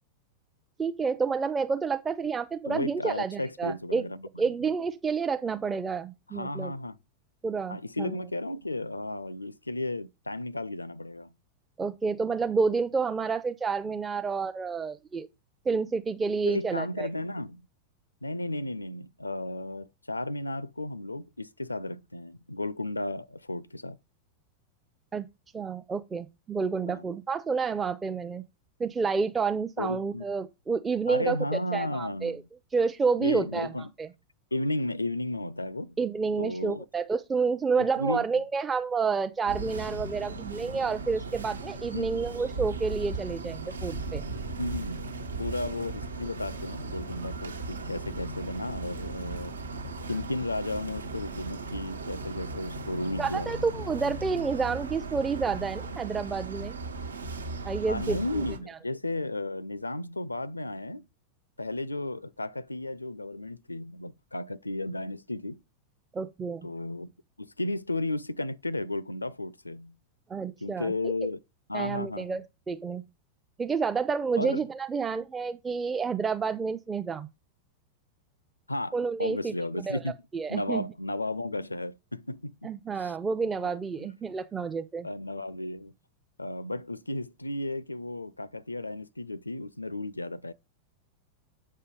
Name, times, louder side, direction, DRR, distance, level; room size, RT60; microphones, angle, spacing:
voice 1, 0.8-4.0 4.4-6.7 7.4-8.2 11.8-15.3 15.7-17.1 25.1-25.2 25.5-28.4 28.8-32.4 32.7-33.7 34.0-34.1 36.0-44.2 53.2-56.8 57.6-58.8 66.1-66.7 70.3-71.1 71.7-73.0 73.6-77.3 78.9-80.0 80.3-80.8 82.6-85.1, right 5 dB, 15° right, 0.6 m, -29 dB
voice 2, 2.7-4.3 6.3-7.0 7.7-11.3 16.5-17.6 18.2-24.0 26.9-27.1 29.8-30.2 31.1-32.5 33.2-33.9 34.5-36.0 36.4-36.9 37.8-38.3 41.9-42.2 44.6-45.1 45.4-49.5 50.1-53.5 57.9-61.0 61.6-65.6 66.6-67.1 67.4-70.0 70.6-71.4 71.7-72.4 74.4-74.7 78.7-80.1 80.5-82.6 83.0-83.1 83.6-84.1 85.0-85.9 86.4-90.5, left 2 dB, 85° left, 0.4 m, -34 dB
sound 1, 39.5-58.6, right 3 dB, 75° right, 1.3 m, -37 dB
8.2 x 5.5 x 5.2 m
figure-of-eight pair, 90°, 0 cm